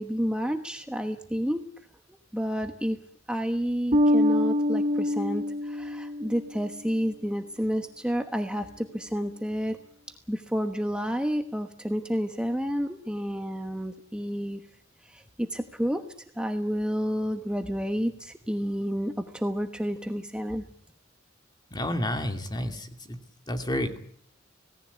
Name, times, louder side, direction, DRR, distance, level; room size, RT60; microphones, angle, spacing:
voice 1, 0.0-1.6 2.3-3.0 3.3-9.8 10.3-14.6 15.0-16.0 16.4-20.6, equal, 5° right, 6 dB, 1.2 m, -30 dB
Bass guitar, 3.9-6.6, left 1 dB, 35° right, 0.9 m, -25 dB
voice 2, 21.7-23.2 23.5-24.0, left 1 dB, 20° left, 6 dB, 2.5 m, -30 dB
26.5 x 18.5 x 8.3 m, 0.63 s
head